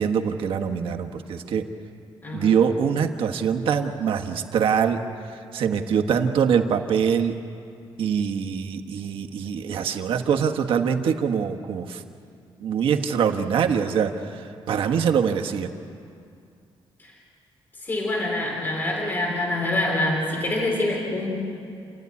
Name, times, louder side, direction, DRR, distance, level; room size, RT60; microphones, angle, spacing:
voice 1, 0.0-1.7 2.3-5.0 5.5-7.4 8.0-12.0 12.6-15.7, right 7 dB, 65° right, 5 dB, 1.4 m, -23 dB
voice 2, 17.8-21.3, left 1 dB, 20° left, -1 dB, 3.6 m, -25 dB
29.0 x 13.0 x 9.6 m, 2.5 s
cardioid pair, 175°, 9 cm